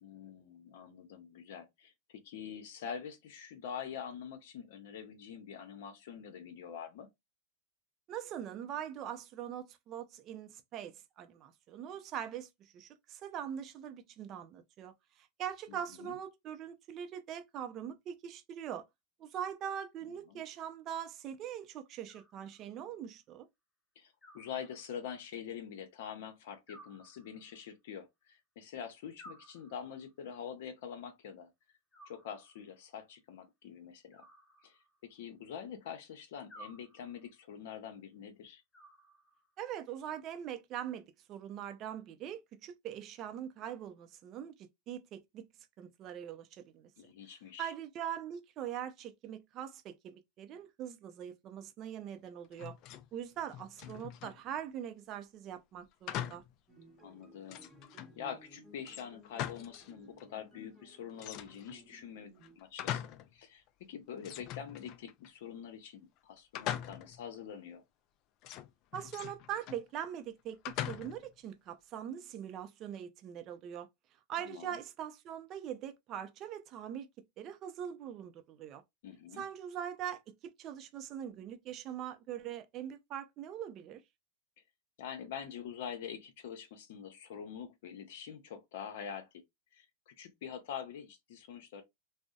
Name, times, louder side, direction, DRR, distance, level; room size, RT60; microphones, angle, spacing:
voice 1, 0.0-7.1 15.7-16.1 20.3-20.4 24.0-31.5 32.1-34.3 34.6-38.6 47.0-47.7 57.0-57.7 58.2-63.0 63.3-67.8 74.4-74.8 79.0-79.4 85.0-89.3 89.7-91.8, left 8 dB, 70° left, 0.7 m, -45 dB
voice 2, 8.1-18.9 19.2-23.5 39.6-45.5 45.8-46.9 47.6-52.8 53.1-56.4 68.9-73.9 74.3-77.1 77.4-78.8 79.4-84.0, right 9 dB, 40° right, 0.4 m, -42 dB
Animal, 22.1-23.0 24.2-25.2 26.7-27.8 29.2-30.2 31.9-32.8 34.1-35.2 36.5-37.4 38.7-39.6, right 1 dB, 15° left, 1.0 m, -58 dB
sound 1, 52.5-53.1 53.4-54.4 56.1-56.5 57.0-57.1 57.5-58.2 58.8-59.9 60.2-60.3 61.2-61.8 62.4-63.3 63.7-63.8 64.2-65.3 66.5-67.3 68.4-69.8 70.6-71.3, left 11 dB, 45° left, 0.3 m, -41 dB
sound 2, 56.7-62.6, equal, 10° right, 0.9 m, -59 dB
2.6 x 2.0 x 2.3 m
supercardioid pair, 125°, 0 cm